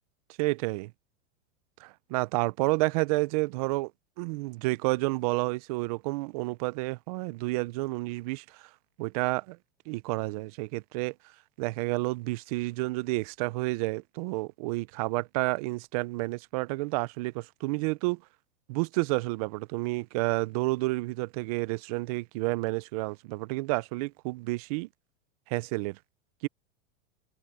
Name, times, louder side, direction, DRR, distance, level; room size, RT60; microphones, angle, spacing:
voice 1, 0.4-0.9 1.8-3.9 4.2-8.4 9.0-9.6 9.9-11.1 11.6-18.2 18.7-24.9 25.5-26.0 26.4-26.5, right 23 dB, 30° right, 0.4 m, -30 dB
supercardioid pair, 145°, 39 cm